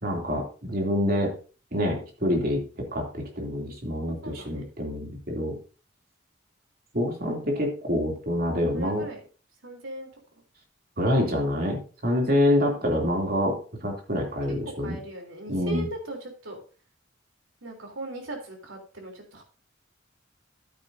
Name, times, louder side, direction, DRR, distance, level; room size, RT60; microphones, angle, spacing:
voice 1, 0.0-1.3 1.7-5.6 6.9-9.0 11.0-15.0 15.5-15.9, left 1 dB, 50° right, 1 dB, 2.9 m, -26 dB
voice 2, 4.1-4.6 8.7-9.2 9.6-10.1 14.5-16.6 17.6-19.4, right 1 dB, 85° right, 2 dB, 3.4 m, -39 dB
13.0 x 9.0 x 2.7 m, 0.37 s
head